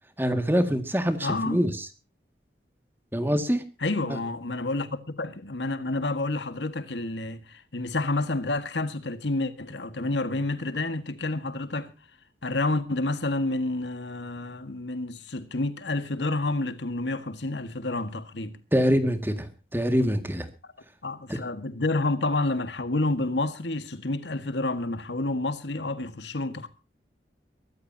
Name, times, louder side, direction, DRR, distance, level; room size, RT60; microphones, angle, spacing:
voice 1, 0.2-1.7 3.1-3.6 18.7-19.5 19.7-20.5 21.3-21.4, equal, 10° right, 2.0 m, -24 dB
voice 2, 1.2-1.6 3.8-11.9 12.4-18.6 21.0-26.7, left 2 dB, 75° left, 1.7 m, -29 dB
24.0 x 13.5 x 2.8 m
head